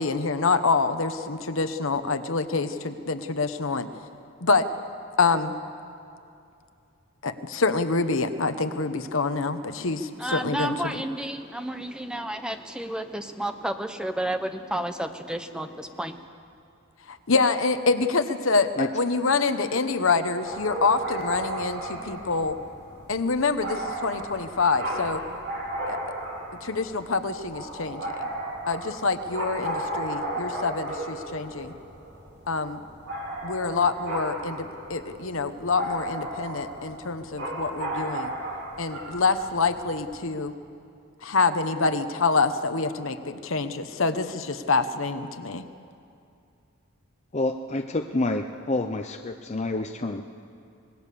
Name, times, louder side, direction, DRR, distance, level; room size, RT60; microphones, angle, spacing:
voice 1, 0.0-3.9 4.4-4.7 5.2-5.5 7.2-11.0 17.1-22.6 23.1-25.2 25.9-26.0 26.6-28.0 28.7-31.7 32.5-32.8 33.4-38.3 38.8-40.5 41.2-45.7, left 4 dB, 65° left, 9 dB, 1.0 m, -26 dB
voice 2, 10.2-16.2, right 1 dB, 5° right, 7 dB, 0.7 m, -31 dB
sound 1, 20.4-40.2, right 1 dB, 50° right, 4.1 m, -35 dB
voice 3, 47.3-49.0 49.5-50.2, left 2 dB, 30° left, 4 dB, 0.7 m, -27 dB
25.5 x 19.5 x 6.9 m, 2.5 s
head